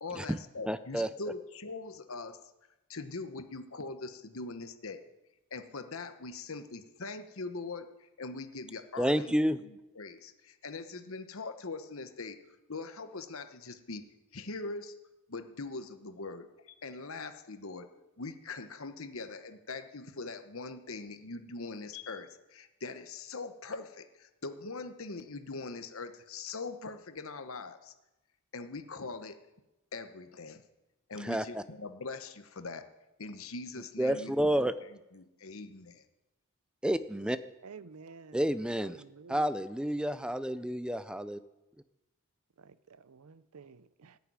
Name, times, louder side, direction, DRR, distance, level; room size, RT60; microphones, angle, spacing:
voice 1, 0.0-2.4 2.9-5.0 5.5-12.4 12.7-14.1 14.3-14.9 15.3-17.9 18.2-27.9 28.5-29.4 29.9-30.6 31.1-32.9 33.2-36.0, left 3 dB, 70° left, 1.1 m, -42 dB
voice 2, 0.7-1.1 9.0-9.6 31.2-31.6 34.0-34.7 36.8-37.4 38.3-38.9 39.3-41.4, equal, 5° right, 0.4 m, -30 dB
voice 3, 37.6-38.4 38.7-39.6 42.6-44.2, right 5 dB, 85° right, 0.6 m, -51 dB
14.0 x 6.9 x 9.6 m
head